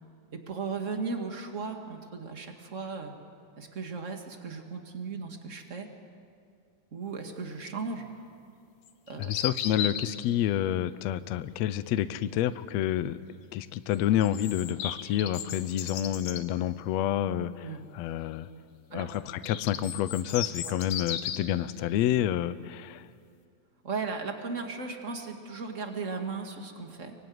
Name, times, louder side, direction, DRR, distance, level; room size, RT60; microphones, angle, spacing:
voice 1, 0.3-3.1 3.5-5.9 6.9-8.1 9.1-9.4 17.6-17.8 18.9-19.1 20.6-20.8 23.8-27.1, right 4 dB, 25° right, 4 dB, 1.8 m, -36 dB
sound 1, 8.9-10.2 13.9-16.4 19.1-21.5, left 9 dB, 65° left, 2.2 m, -35 dB
voice 2, 9.3-13.2 13.5-17.7 17.9-18.5 18.9-23.0, left 11 dB, 90° left, 13 dB, 1.5 m, -29 dB
25.0 x 24.0 x 9.5 m, 2.3 s
omnidirectional pair, 4.1 m